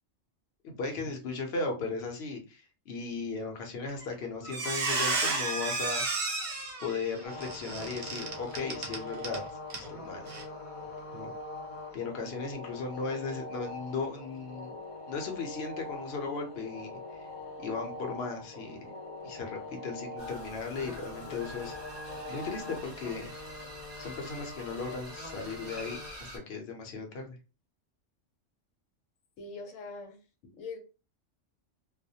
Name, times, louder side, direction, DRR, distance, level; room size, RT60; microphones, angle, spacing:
voice 1, 0.6-6.3 6.8-9.4 9.7-10.3 11.1-11.3 11.9-14.8 15.1-16.9 17.6-18.8 19.2-21.8 22.3-23.4 24.0-27.4, left 4 dB, 65° left, 3 dB, 0.8 m, -36 dB
Squeak, 3.9-4.1 4.4-9.4 9.7-9.9 10.3-10.4, right 3 dB, 65° right, 0.3 m, -32 dB
sound 1, 7.2-26.1, left 2 dB, 45° left, 0.4 m, -43 dB
sound 2, 20.2-26.4, equal, 20° right, 0.9 m, -46 dB
voice 2, 29.4-30.2 30.5-30.8, left 4 dB, 90° left, 4 dB, 1.0 m, -42 dB
2.3 x 2.1 x 2.7 m, 0.32 s
omnidirectional pair, 1.3 m